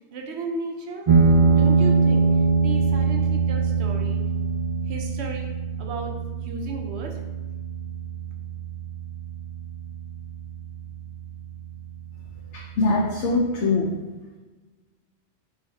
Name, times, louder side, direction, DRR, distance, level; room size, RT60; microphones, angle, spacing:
voice 1, 0.1-1.1 1.5-2.3 2.6-4.2 4.9-5.5 5.8-6.1 6.4-7.2, right 3 dB, 70° right, 3 dB, 0.9 m, -34 dB
sound 1, 1.1-10.1, right 4 dB, 40° right, 0.5 m, -22 dB
voice 2, 12.5-13.9, left 3 dB, 75° left, -4 dB, 0.9 m, -23 dB
4.1 x 2.4 x 3.9 m, 1.2 s
omnidirectional pair, 1.2 m